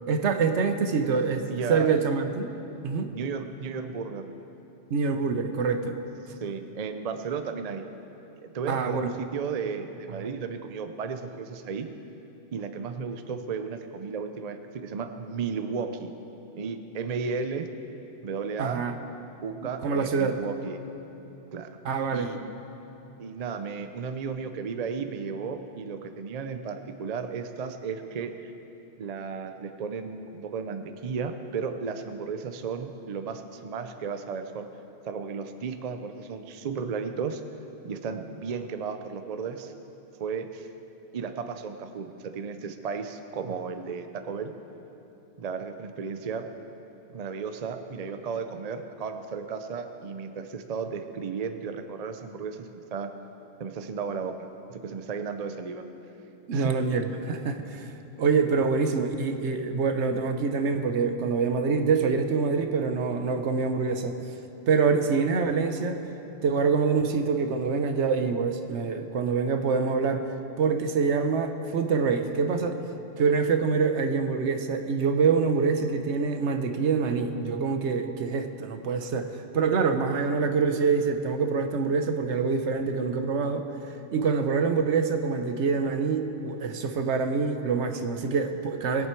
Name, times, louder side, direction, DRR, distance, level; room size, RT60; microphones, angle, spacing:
voice 1, 0.1-2.5 2.8-3.1 4.9-6.0 8.7-9.1 18.6-19.0 19.8-20.4 21.8-22.4 56.5-57.9 58.2-64.2 64.7-66.0 66.4-70.3 70.6-72.8 73.2-83.7 84.1-89.1, right 5 dB, 70° right, 7 dB, 1.1 m, -25 dB
voice 2, 1.5-1.9 3.1-4.3 6.4-7.8 8.4-11.9 12.5-16.1 16.6-17.7 18.2-18.8 19.4-20.8 21.5-21.8 22.1-22.4 23.2-28.3 29.0-34.7 35.1-37.4 37.8-39.7 40.2-40.7 41.1-44.5 45.4-46.5 47.1-53.1 53.6-55.8 56.5-56.8, right 5 dB, 45° right, 8 dB, 0.5 m, -34 dB
20.5 x 7.5 x 4.5 m, 2.9 s
omnidirectional pair, 1.2 m